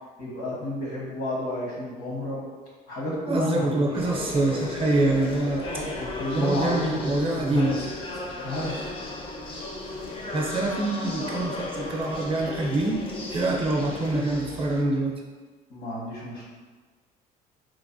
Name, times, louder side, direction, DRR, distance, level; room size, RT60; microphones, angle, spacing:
voice 1, 0.2-2.4 2.9-3.8 5.6-7.7 8.4-8.8 15.7-16.4, left 1 dB, 80° left, -6 dB, 1.2 m, -31 dB
voice 2, 3.2-5.6 6.3-7.8 10.3-13.0 13.3-15.1, right 2 dB, 35° right, -1 dB, 0.5 m, -25 dB
sound 1, 3.9-14.8, left 2 dB, 30° left, 0.4 m, -35 dB
3.2 x 2.1 x 2.5 m, 1.4 s
cardioid pair, 110°, 17 cm